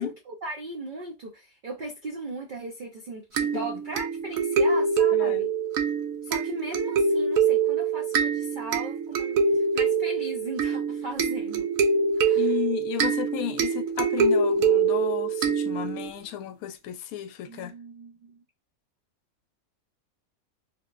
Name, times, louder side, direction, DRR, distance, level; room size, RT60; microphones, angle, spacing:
voice 1, 0.0-5.5 6.2-11.7 12.2-12.5 17.5-18.4, right 2 dB, 50° right, 0.6 m, -37 dB
sound 1, 3.4-16.1, right 5 dB, 85° right, 1.1 m, -25 dB
voice 2, 3.5-3.8 5.1-5.4 12.3-17.7, left 11 dB, 85° left, 1.0 m, -33 dB
3.5 x 3.0 x 2.4 m
omnidirectional pair, 1.5 m